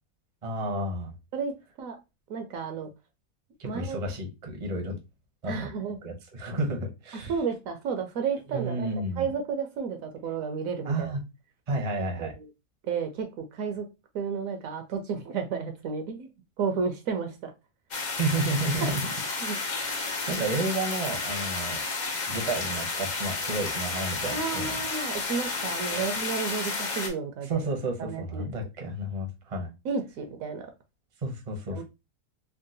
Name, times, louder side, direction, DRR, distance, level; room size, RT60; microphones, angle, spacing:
voice 1, 0.4-1.1 3.6-5.0 5.4-5.7 6.0-7.3 8.5-9.3 10.8-11.2 11.7-12.3 18.2-19.1 19.8-19.9 20.3-21.8 22.3-24.8 25.9-26.1 27.4-29.7 31.2-31.8, right 2 dB, 40° right, 1 dB, 0.5 m, -31 dB
voice 2, 1.3-2.0 2.3-2.9 3.6-4.1 5.5-6.0 7.3-8.9 9.2-11.1 12.2-12.5 12.8-13.9 14.1-16.3 16.6-17.5 18.8-18.9 19.4-19.6 24.3-27.6 28.0-28.7 29.8-30.7 31.7-31.8, right 5 dB, 70° right, 6 dB, 0.9 m, -32 dB
sound 1, 17.9-27.1, left 3 dB, 85° left, 0.4 m, -31 dB
3.6 x 2.2 x 2.6 m, 0.25 s
omnidirectional pair, 1.6 m